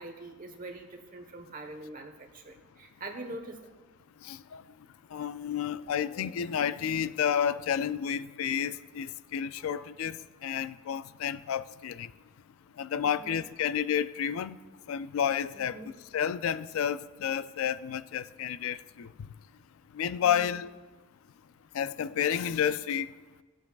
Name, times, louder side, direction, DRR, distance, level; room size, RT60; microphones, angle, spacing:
voice 1, 0.0-3.8 9.6-9.9 13.0-13.4 15.5-15.9 20.2-20.5, right 2 dB, 40° right, 4 dB, 1.2 m, -44 dB
voice 2, 4.3-4.6 5.1-12.1 12.8-14.6 14.9-15.8 16.1-19.1 19.9-20.7 21.7-23.1, left 8 dB, 75° left, 14 dB, 0.3 m, -30 dB
18.0 x 7.8 x 2.4 m, 1.3 s
head